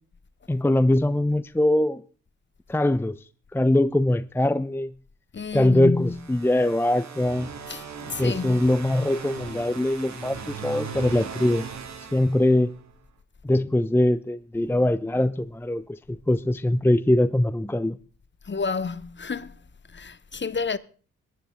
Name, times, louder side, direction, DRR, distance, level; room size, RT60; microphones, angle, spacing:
voice 1, 0.5-2.0 2.7-3.2 3.5-4.9 5.5-7.5 8.2-11.7 12.1-12.7 13.4-16.0 16.3-18.0, left 1 dB, 5° left, 0.7 m, -22 dB
voice 2, 5.3-6.2 7.7-8.6 18.5-19.5 19.9-20.8, left 4 dB, 35° left, 1.2 m, -30 dB
sound 1, 6.0-12.9, right 6 dB, 55° right, 2.4 m, -38 dB
22.0 x 9.7 x 3.8 m
hypercardioid pair, 45°, 33 cm